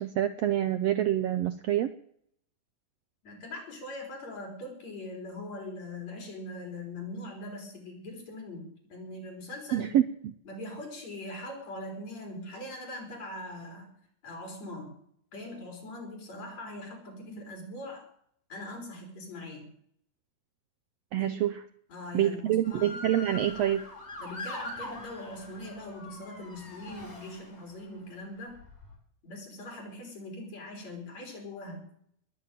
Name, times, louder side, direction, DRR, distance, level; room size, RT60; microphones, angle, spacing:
voice 1, 0.0-1.9 9.7-10.3 21.1-21.6 22.1-23.9, right 11 dB, 70° right, 10 dB, 1.6 m, -27 dB
voice 2, 3.2-9.9 10.5-13.9 14.2-15.0 15.3-18.1 18.5-19.7 21.2-21.3 21.9-23.0 24.2-28.6 29.2-31.9, left 1 dB, 55° left, 2 dB, 5.4 m, -41 dB
Motor vehicle (road) / Siren, 22.6-27.9 28.5-29.0, left 2 dB, 20° left, 4.6 m, -43 dB
20.5 x 6.9 x 9.1 m, 0.65 s
omnidirectional pair, 3.6 m